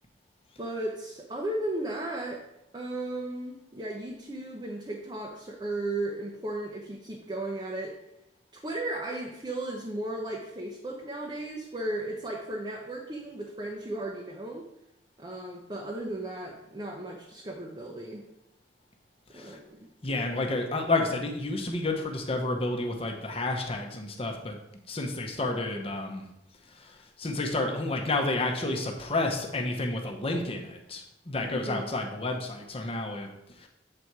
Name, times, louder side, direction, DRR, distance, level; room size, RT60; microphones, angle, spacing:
voice 1, 0.6-2.4 2.7-8.0 8.5-14.6 15.2-18.2 19.3-19.9 31.4-31.9, right 1 dB, 25° right, -1 dB, 0.8 m, -35 dB
voice 2, 20.0-24.6 24.9-26.2 26.7-33.3 33.6-33.7, left 2 dB, 30° left, 2 dB, 0.9 m, -30 dB
7.8 x 4.2 x 4.7 m, 0.84 s
head